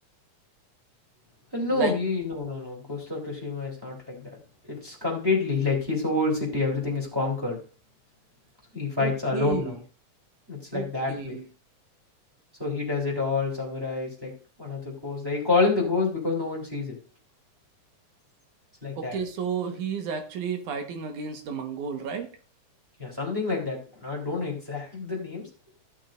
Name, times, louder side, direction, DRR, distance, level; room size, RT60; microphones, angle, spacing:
voice 1, 1.5-4.3 4.6-7.6 8.7-9.8 10.5-11.4 12.6-14.3 14.6-16.9 18.8-19.1 23.0-25.4, left 3 dB, 5° right, -3 dB, 3.3 m, -28 dB
voice 2, 9.0-9.8 10.7-11.5 19.0-22.4, right 6 dB, 80° right, 5 dB, 2.8 m, -32 dB
15.0 x 7.5 x 2.6 m, 0.36 s
omnidirectional pair, 3.5 m